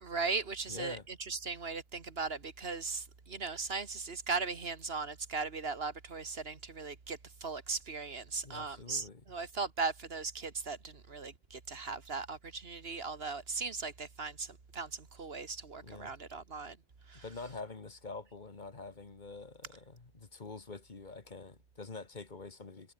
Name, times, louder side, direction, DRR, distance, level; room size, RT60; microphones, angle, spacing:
voice 1, 0.0-16.8 17.1-17.2, right 4 dB, 65° right, 2.0 m, -38 dB
voice 2, 0.7-1.1 8.4-9.2 15.8-16.2 17.1-22.9, left 3 dB, 45° left, 1.7 m, -46 dB
omnidirectional pair, 1.1 m